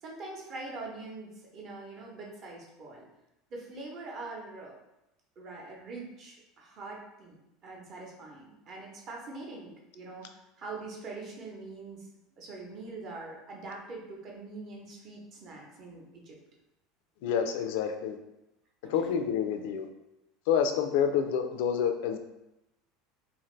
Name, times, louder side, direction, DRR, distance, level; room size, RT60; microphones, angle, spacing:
voice 1, 0.0-3.1 3.5-4.7 5.4-7.4 7.6-12.1 12.4-16.4 18.8-19.1, right 3 dB, 40° right, -1 dB, 0.8 m, -43 dB
voice 2, 17.2-18.2 18.9-19.9 20.5-22.2, left 7 dB, 75° left, 7 dB, 0.3 m, -28 dB
2.6 x 2.5 x 3.2 m, 0.90 s
supercardioid pair, 135°, 0 cm